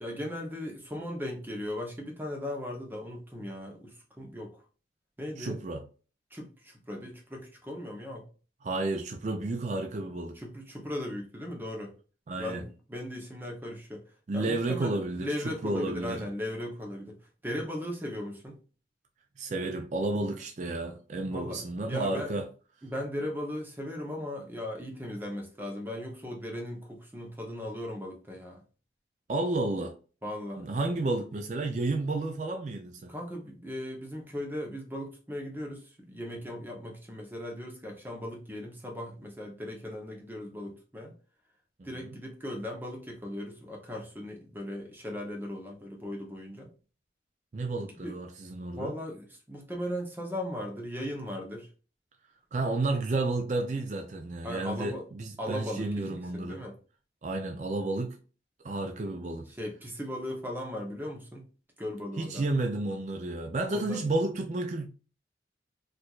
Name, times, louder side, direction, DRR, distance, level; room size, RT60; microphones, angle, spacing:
voice 1, 0.0-4.5 5.2-5.6 6.3-8.2 10.4-11.9 12.4-14.0 14.3-17.2 17.4-18.6 21.3-21.6 21.9-22.4 22.8-28.6 30.2-30.7 33.1-41.1 41.8-46.7 47.9-48.2 48.7-51.7 54.4-55.1 55.4-56.7 59.6-61.4 61.8-62.4 63.7-64.0, left 1 dB, 10° right, 0.7 m, -37 dB
voice 2, 5.4-5.8 8.6-10.4 12.3-12.6 14.3-16.2 19.4-22.5 29.3-29.9 30.6-33.1 41.8-42.1 47.5-48.9 52.5-56.6 57.2-58.2 58.6-59.5 62.2-64.9, right 2 dB, 40° right, 0.4 m, -31 dB
4.3 x 2.5 x 2.3 m
head